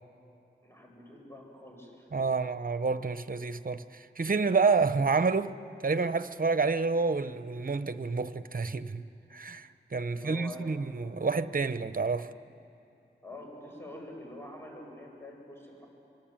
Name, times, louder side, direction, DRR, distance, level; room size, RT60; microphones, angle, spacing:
voice 1, 0.6-2.3 10.0-10.8 13.2-15.9, left 1 dB, 10° left, 7.9 m, -46 dB
voice 2, 2.1-5.5 5.8-9.0 9.3-12.3, right 4 dB, 45° right, 0.9 m, -29 dB
26.0 x 25.5 x 9.1 m
wide cardioid pair, 70°, 20 cm